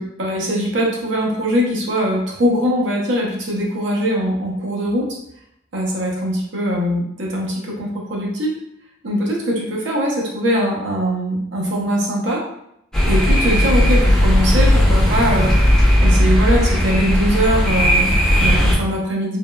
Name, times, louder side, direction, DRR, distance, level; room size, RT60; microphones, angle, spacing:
voice 1, 0.0-5.1 5.7-8.5 9.0-12.4 13.1-15.5 16.0-19.4, equal, 70° right, -2 dB, 0.7 m, -21 dB
sound 1, 12.9-18.7, equal, 5° left, 0.6 m, -15 dB
3.5 x 2.0 x 2.2 m, 0.77 s
head